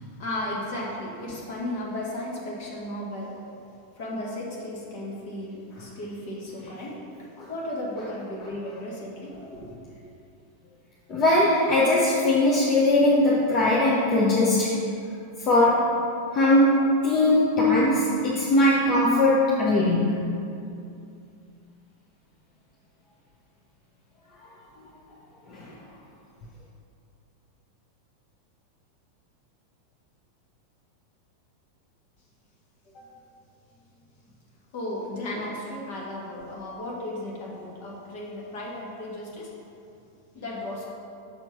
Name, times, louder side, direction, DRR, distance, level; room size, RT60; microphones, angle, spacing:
voice 1, 0.0-3.3 4.0-9.8 32.9-33.1 34.7-39.5 40.3-40.8, left 1 dB, 50° left, -4 dB, 1.8 m, -35 dB
voice 2, 11.1-14.8 15.4-16.0 16.3-20.3 25.5-25.7, left 1 dB, 35° left, -6 dB, 1.0 m, -20 dB
6.6 x 4.4 x 6.0 m, 2.5 s
figure-of-eight pair, 90°, 0 cm